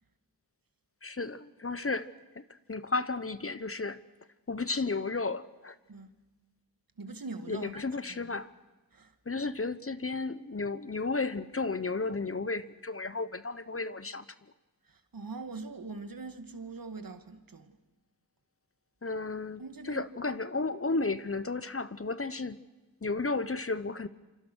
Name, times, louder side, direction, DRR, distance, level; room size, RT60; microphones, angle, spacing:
voice 1, 1.0-2.1 2.4-2.5 2.7-4.0 4.5-5.8 7.5-8.5 9.3-14.2 19.0-22.6 23.0-24.1, left 3 dB, 35° left, 1.1 m, -33 dB
voice 2, 7.0-7.8 8.1-8.4 8.9-9.1 14.9-17.8 19.6-20.1, right 3 dB, 60° right, 2.3 m, -42 dB
27.5 x 25.5 x 6.4 m
cardioid pair, 60°, 39 cm